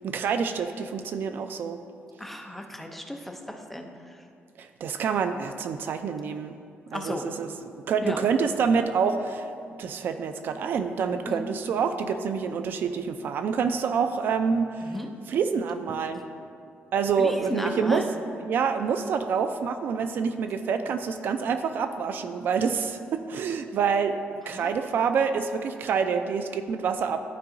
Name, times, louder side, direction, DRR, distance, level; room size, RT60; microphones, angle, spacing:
voice 1, 0.0-1.8 4.6-6.6 6.9-7.5 7.9-9.5 9.8-15.0 15.3-16.2 16.9-18.0 18.4-24.2 24.5-27.2, right 6 dB, 55° right, 9 dB, 0.3 m, -27 dB
voice 2, 2.2-3.9 6.9-7.3 8.0-8.2 11.3-11.5 14.8-15.1 17.2-18.1 24.5-24.9, left 1 dB, 5° left, 2 dB, 0.5 m, -34 dB
13.0 x 4.7 x 2.6 m, 2.4 s
cardioid pair, 165°, 4 cm